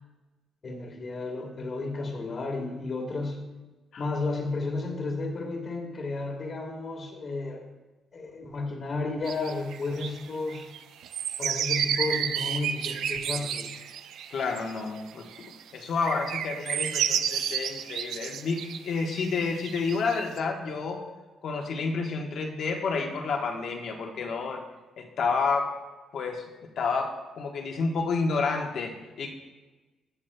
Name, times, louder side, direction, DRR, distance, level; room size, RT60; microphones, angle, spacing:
voice 1, 0.6-3.4 4.0-7.6 8.1-10.7 11.4-13.7, left 3 dB, 45° left, 3 dB, 1.5 m, -32 dB
sound 1, 9.3-15.0 15.3-15.6 16.0-20.4, right 9 dB, 80° right, 0.4 m, -31 dB
voice 2, 14.3-15.3 15.7-21.0 21.4-24.6 25.0-25.7 26.1-26.5 26.8-29.3, left 4 dB, 65° left, 2 dB, 1.1 m, -30 dB
17.0 x 6.0 x 2.2 m, 1.2 s
cardioid pair, 90°, 0 cm